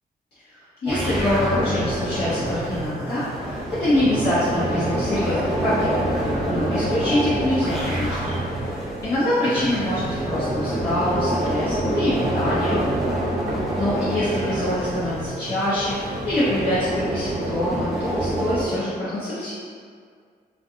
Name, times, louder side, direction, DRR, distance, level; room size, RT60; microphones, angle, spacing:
voice 1, 0.4-12.8 13.8-19.5, left 1 dB, 70° left, -14 dB, 0.8 m, -25 dB
sound 1, 0.9-18.6, right 1 dB, ahead, 0.5 m, -27 dB
sound 2, 1.3-17.5, right 3 dB, 60° right, 0.4 m, -35 dB
2.4 x 2.3 x 2.6 m, 2.1 s
wide cardioid pair, 120°, 17 cm